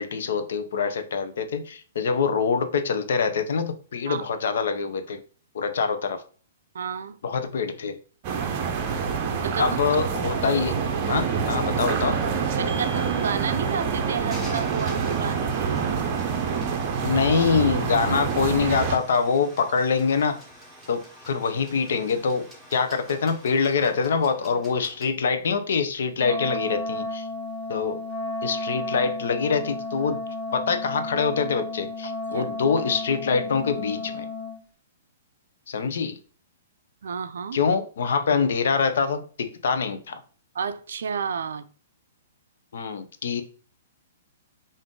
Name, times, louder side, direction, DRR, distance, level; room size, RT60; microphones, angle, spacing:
voice 1, 0.0-5.2 5.5-6.2 7.2-8.0 9.6-10.8 11.1-12.2 17.0-20.4 20.9-27.3 27.7-28.0 28.4-30.2 30.5-34.3 35.7-36.2 37.5-40.2 42.7-43.4, left 5 dB, 70° left, 0.6 m, -25 dB
voice 2, 6.7-7.2 9.4-9.8 12.6-15.9 26.3-26.4 32.3-32.5 37.0-37.6 40.5-41.6, right 6 dB, 80° right, 0.4 m, -31 dB
sound 1, 8.2-19.0, right 6 dB, 35° right, 0.6 m, -26 dB
sound 2, 12.7-25.1, right 1 dB, 5° right, 1.0 m, -46 dB
Wind instrument woodwind instrument, 26.2-34.6, left 2 dB, 15° left, 1.9 m, -32 dB
3.7 x 2.5 x 3.7 m
hypercardioid pair, 160°, 0 cm